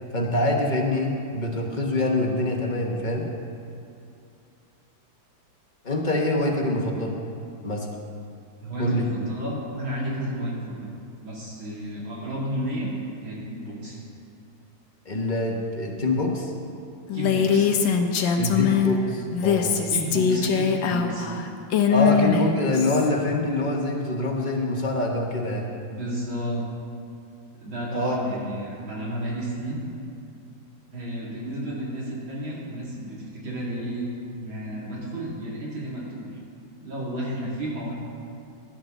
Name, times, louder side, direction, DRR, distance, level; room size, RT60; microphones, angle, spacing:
voice 1, 0.1-3.3 5.8-7.1 7.6-7.9 8.8-9.0 15.0-16.5 18.4-19.7 21.9-25.7 27.9-28.2, left 1 dB, 25° left, 0 dB, 1.3 m, -25 dB
voice 2, 8.6-10.9 11.2-12.9 13.2-14.0 17.1-17.7 19.9-21.3 25.9-26.6 27.6-29.8 30.9-34.1 34.4-36.4 36.8-37.9, right 1 dB, 85° right, -6 dB, 3.6 m, -32 dB
Female speech woman speaking, 17.1-18.9 19.3-23.1, left 7 dB, 75° left, 1.5 m, -22 dB
17.0 x 10.5 x 3.9 m, 2.5 s
omnidirectional pair, 2.1 m